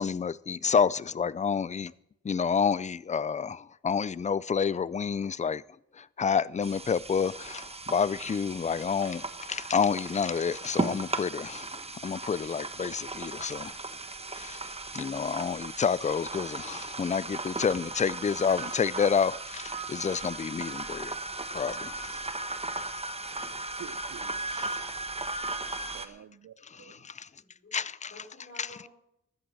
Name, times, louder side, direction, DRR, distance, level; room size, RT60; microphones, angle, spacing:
voice 1, 0.0-1.9 2.2-5.6 6.0-13.8 14.3-14.6 14.9-21.1 21.5-22.1 24.5-24.8 27.0-27.3 27.7-28.2 28.6-28.8, left 6 dB, 25° left, 0.4 m, -29 dB
sound 1, 6.6-26.1, right 2 dB, 20° right, 1.1 m, -37 dB
voice 2, 23.3-24.7 25.9-27.0, right 8 dB, 65° right, 0.7 m, -49 dB
voice 3, 27.3-27.8 28.1-28.9, left 1 dB, 45° left, 4.9 m, -51 dB
15.5 x 12.5 x 4.1 m
wide cardioid pair, 100°, 29 cm